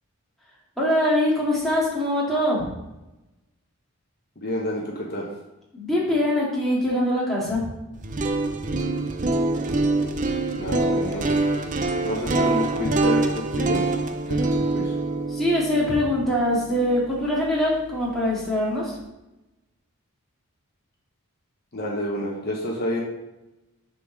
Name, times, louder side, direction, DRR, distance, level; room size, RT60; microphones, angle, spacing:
voice 1, 0.8-2.6 5.7-7.7 15.3-19.0, left 1 dB, ahead, -6 dB, 2.0 m, -23 dB
voice 2, 4.4-5.3 10.6-11.3 12.0-14.0 14.3-14.9 21.7-23.0, left 1 dB, 45° left, -2 dB, 1.1 m, -29 dB
sound 1, 7.9-18.0, right 2 dB, 35° right, 0.5 m, -25 dB
6.7 x 4.0 x 6.1 m, 0.96 s
head